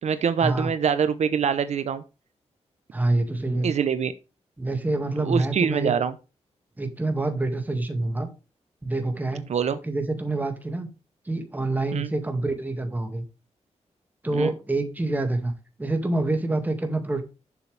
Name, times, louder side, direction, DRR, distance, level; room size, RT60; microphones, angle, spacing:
voice 1, 0.0-2.0 3.6-4.1 5.2-6.1 9.5-9.8 11.9-12.1 14.3-14.5, right 7 dB, 75° right, 12 dB, 0.8 m, -24 dB
voice 2, 2.9-3.7 4.6-5.9 6.8-8.3 8.8-9.4 9.8-10.9 11.3-13.2 14.2-15.5 15.8-17.2, right 2 dB, 15° right, 6 dB, 2.0 m, -26 dB
11.0 x 7.1 x 3.4 m, 0.30 s
wide cardioid pair, 140°, 12 cm